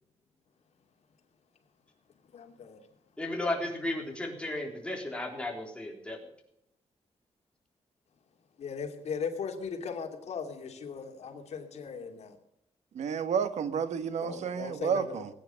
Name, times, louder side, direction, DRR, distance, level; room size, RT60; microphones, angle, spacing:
voice 1, 2.3-2.9 8.6-12.4 14.2-15.2, left 6 dB, 70° left, 4 dB, 2.7 m, -38 dB
voice 2, 3.2-6.2, left 1 dB, 10° left, 1 dB, 3.7 m, -34 dB
voice 3, 12.9-15.3, right 7 dB, 85° right, 11 dB, 1.3 m, -31 dB
20.0 x 9.6 x 6.8 m, 0.78 s
wide cardioid pair, 150°, 12 cm